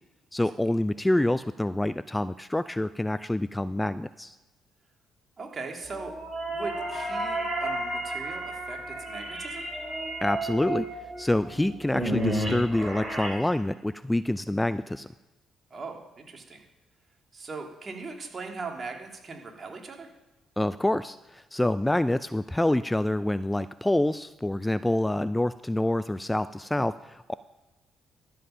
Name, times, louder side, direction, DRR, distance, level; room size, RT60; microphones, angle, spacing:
voice 1, 0.3-4.3 10.2-10.9 11.2-15.1 20.6-27.3, left 1 dB, 10° left, 14 dB, 0.4 m, -27 dB
voice 2, 5.4-6.1 6.5-9.7 15.7-16.6 17.3-20.1, right 4 dB, 40° right, 2 dB, 2.6 m, -39 dB
sound 1, 5.9-13.3, right 1 dB, 10° right, 4.5 m, -32 dB
12.5 x 7.5 x 5.7 m, 1.1 s
hypercardioid pair, 50°, 0 cm